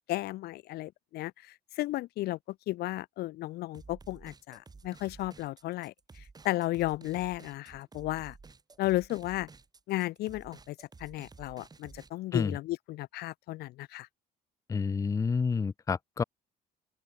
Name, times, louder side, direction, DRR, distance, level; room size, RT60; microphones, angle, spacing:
voice 1, 0.1-8.4 8.8-9.5 9.9-14.1, left 17 dB, 70° left, 0.6 m, -34 dB
sound 1, 3.7-12.1, right 4 dB, 25° right, 4.7 m, -52 dB
voice 2, 14.7-16.2, left 5 dB, 20° left, 0.4 m, -29 dB
open air
cardioid pair, 110°, 17 cm